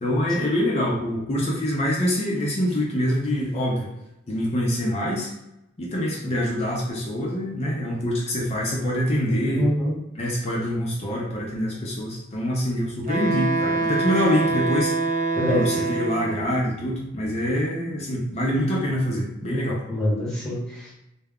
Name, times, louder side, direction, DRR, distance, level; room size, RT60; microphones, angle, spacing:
voice 1, 0.0-3.9 4.3-5.3 5.8-9.7 10.1-15.1 15.5-19.8, equal, 30° left, -3 dB, 0.4 m, -25 dB
voice 2, 9.6-9.9 15.3-15.8 19.9-21.0, equal, ahead, -7 dB, 0.9 m, -25 dB
Wind instrument woodwind instrument, 13.0-16.5, right 3 dB, 35° right, 0.5 m, -25 dB
2.3 x 2.0 x 3.4 m, 0.88 s
head